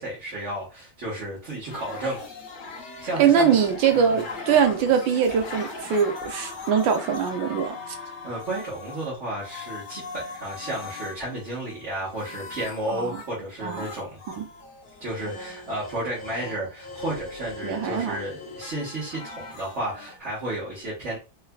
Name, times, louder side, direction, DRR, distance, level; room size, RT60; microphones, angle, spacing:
voice 1, 0.0-2.2 3.0-3.5 3.9-4.2 8.2-14.2 15.0-21.2, right 1 dB, 40° right, 1.5 m, -32 dB
sound 1, 1.7-9.1 9.4-13.3 13.6-20.2, left 3 dB, 50° left, 0.6 m, -39 dB
voice 2, 3.2-7.8 12.9-13.2 13.6-13.9 14.3-14.4 17.6-18.2, right 7 dB, 80° right, 1.3 m, -22 dB
3.4 x 3.2 x 2.3 m
omnidirectional pair, 2.1 m